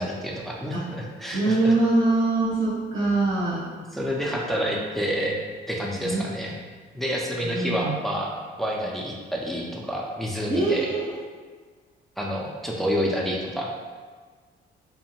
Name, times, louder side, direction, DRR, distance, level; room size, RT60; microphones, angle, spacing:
voice 1, 0.0-1.7 3.9-5.4 5.7-6.6 6.9-10.9 12.2-13.7, equal, ahead, -2 dB, 0.4 m, -28 dB
voice 2, 1.3-3.6 6.0-6.2 7.4-7.9 10.5-11.0, right 2 dB, 75° right, -10 dB, 1.2 m, -23 dB
2.7 x 2.1 x 2.9 m, 1.5 s
cardioid pair, 90°, 20 cm